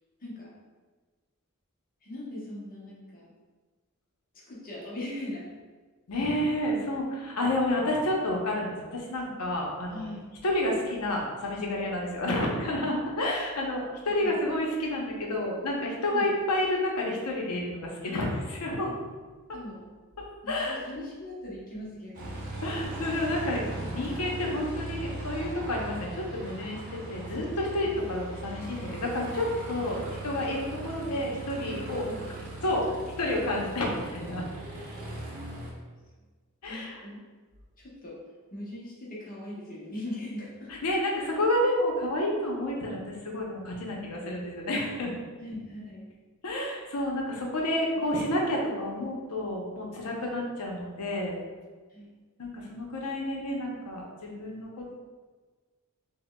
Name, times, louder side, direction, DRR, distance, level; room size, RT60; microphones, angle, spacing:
voice 1, 0.2-0.5 2.0-3.3 4.3-5.5 9.9-10.3 14.2-14.4 16.1-16.3 18.0-18.2 19.5-19.9 20.4-22.5 31.7-32.3 34.5-35.8 36.7-37.3 37.8-38.2 38.5-40.7 41.2-41.4 43.9-44.0 45.4-46.1 48.1-48.2 50.0-50.2 51.9-52.1, left 1 dB, 40° left, -5 dB, 0.8 m, -41 dB
voice 2, 6.1-10.1 10.4-18.9 19.5-19.6 20.5-20.8 22.6-32.1 32.6-32.9 33.2-34.5 36.6-37.0 40.7-45.2 46.4-51.4 52.4-54.9, left 1 dB, 85° left, -1 dB, 0.7 m, -30 dB
Aircraft, 22.1-35.7, right 2 dB, 40° right, 0.8 m, -39 dB
4.9 x 2.2 x 2.2 m, 1.4 s
head